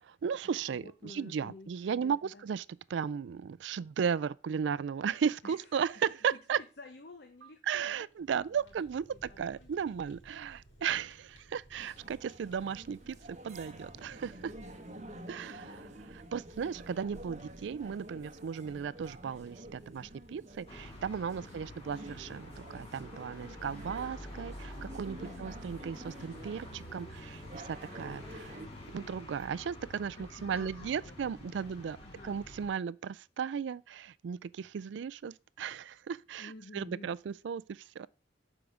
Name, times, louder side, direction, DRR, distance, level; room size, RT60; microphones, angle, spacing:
voice 1, 0.0-6.6 7.6-14.5 15.3-28.5 28.9-32.0 32.2-38.1, right 7 dB, 70° right, 0.3 m, -36 dB
voice 2, 0.7-2.4 5.4-5.7 6.3-8.1 8.4-8.7 9.1-9.8 14.7-16.0 21.4-21.7 25.2-25.7 30.2-31.8 32.0-32.4 36.4-37.1, left 2 dB, 55° left, 0.8 m, -52 dB
Fire, 8.1-21.5, right 1 dB, 75° left, 3.2 m, -58 dB
sound 1, 11.8-28.7, right 1 dB, 35° right, 1.0 m, -50 dB
sound 2, 20.7-32.7, left 1 dB, 30° left, 2.1 m, -48 dB
6.9 x 4.9 x 6.3 m
head